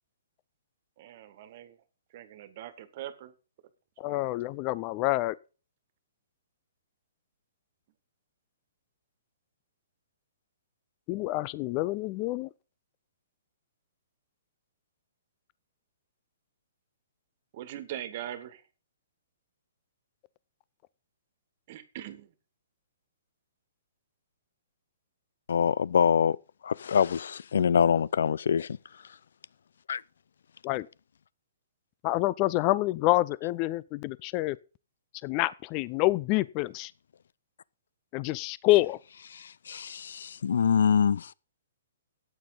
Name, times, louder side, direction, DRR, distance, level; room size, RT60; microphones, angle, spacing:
voice 1, 1.0-1.8 2.1-3.3 4.0-4.4 17.5-18.6 21.7-22.3, right 12 dB, 40° right, 1.6 m, -41 dB
voice 2, 4.0-5.4 11.1-12.5 30.6-30.9 32.0-34.6 35.2-36.9 38.1-39.0, left 18 dB, 25° left, 0.4 m, -27 dB
voice 3, 25.5-26.4 26.6-28.8 29.9-30.0 39.3-41.3, left 7 dB, 75° left, 0.5 m, -25 dB
13.5 x 9.4 x 3.9 m
hypercardioid pair, 165°, 0 cm